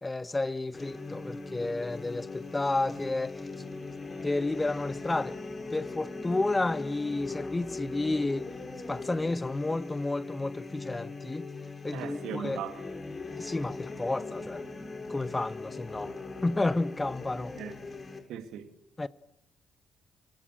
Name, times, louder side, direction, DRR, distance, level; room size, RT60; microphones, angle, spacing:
voice 1, 0.0-3.4 4.2-5.4 5.7-8.5 8.9-11.5 11.8-12.6 13.4-14.6 15.1-16.1 16.4-17.5 19.0-19.1, left 2 dB, 20° left, 1.4 m, -31 dB
sound 1, 0.7-18.2, left 3 dB, 35° left, 6.6 m, -40 dB
voice 2, 11.9-12.8 17.6-17.7 18.3-18.7, right 10 dB, 70° right, 2.6 m, -38 dB
28.5 x 26.5 x 6.5 m
hypercardioid pair, 40°, 0 cm